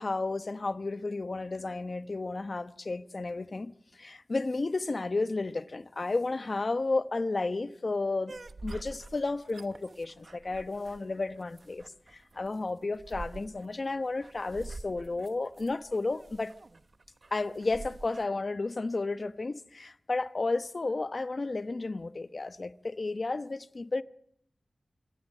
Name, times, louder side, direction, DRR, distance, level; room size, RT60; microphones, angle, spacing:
voice 1, 0.0-8.4 8.6-16.5 17.3-24.0, left 3 dB, 55° left, 0.9 m, -32 dB
sound 1, 8.3-18.2, right 3 dB, 60° right, 1.1 m, -47 dB
26.5 x 16.5 x 8.4 m
wide cardioid pair, 75°, 0 cm